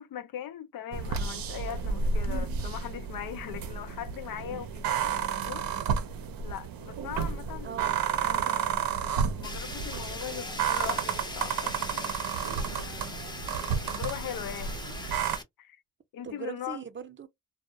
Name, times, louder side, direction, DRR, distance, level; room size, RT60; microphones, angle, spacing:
voice 1, 0.0-5.7 6.4-7.8 9.4-12.2 12.7-13.2 13.6-15.2 15.6-15.8 16.1-16.8, left 10 dB, 80° left, 0.5 m, -40 dB
sound 1, 0.9-15.4, right 6 dB, 85° right, 0.5 m, -31 dB
voice 2, 7.6-8.8 16.2-17.3, right 6 dB, 35° right, 0.5 m, -41 dB
Fire, 9.4-15.4, left 2 dB, 15° left, 0.5 m, -40 dB
2.3 x 2.0 x 2.7 m
cardioid pair, 85°, 34 cm